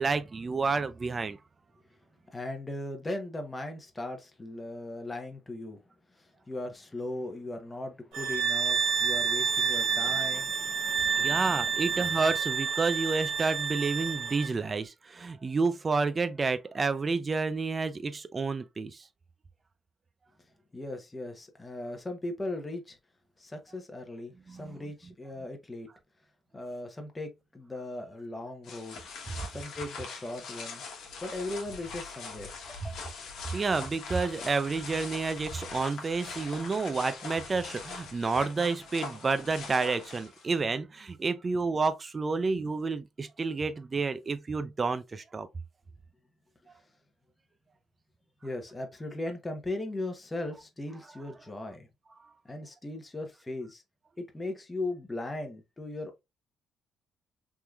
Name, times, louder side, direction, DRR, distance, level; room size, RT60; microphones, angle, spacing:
voice 1, 0.0-1.4 11.1-19.0 24.5-24.8 32.8-32.9 33.5-45.5, right 4 dB, 30° right, 0.5 m, -30 dB
voice 2, 2.3-5.8 6.5-12.0 20.7-23.0 23.4-25.9 26.5-29.0 29.5-30.8 31.2-32.9 48.4-51.9 52.4-53.8 54.2-56.2, left 2 dB, 20° left, 0.9 m, -38 dB
sound 1, 8.1-14.5, right 6 dB, 90° right, 1.1 m, -29 dB
sound 2, 28.6-40.6, left 5 dB, 75° left, 1.1 m, -42 dB
3.6 x 2.9 x 2.3 m
cardioid pair, 90°, 0 cm